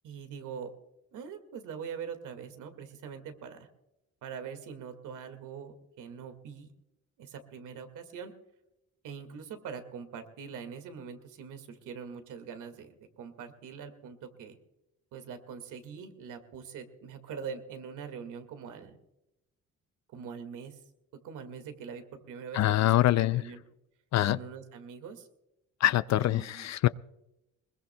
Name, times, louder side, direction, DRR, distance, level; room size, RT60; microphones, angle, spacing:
voice 1, 0.0-0.7 1.1-3.7 4.2-6.7 7.2-8.3 9.0-14.6 15.1-19.0 20.1-20.8 21.2-23.6 24.3-25.3 26.1-26.7, right 6 dB, 90° right, 8 dB, 2.1 m, -43 dB
voice 2, 22.5-23.4 24.1-24.4 25.8-26.9, left 14 dB, 60° left, 16 dB, 0.5 m, -24 dB
21.5 x 21.5 x 2.3 m, 0.89 s
cardioid pair, 90°, 30 cm